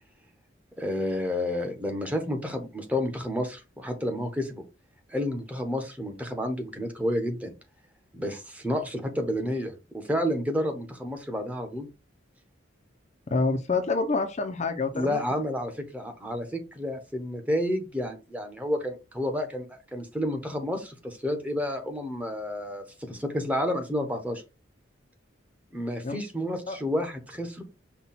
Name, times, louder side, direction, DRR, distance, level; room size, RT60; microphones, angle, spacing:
voice 1, 0.8-4.6 5.1-7.5 8.1-11.9 14.9-24.4 25.7-27.6, left 1 dB, 10° right, 0.8 m, -30 dB
voice 2, 13.3-15.2 26.0-26.2 26.7-26.8, left 3 dB, 35° left, 0.5 m, -27 dB
5.6 x 2.2 x 4.1 m
head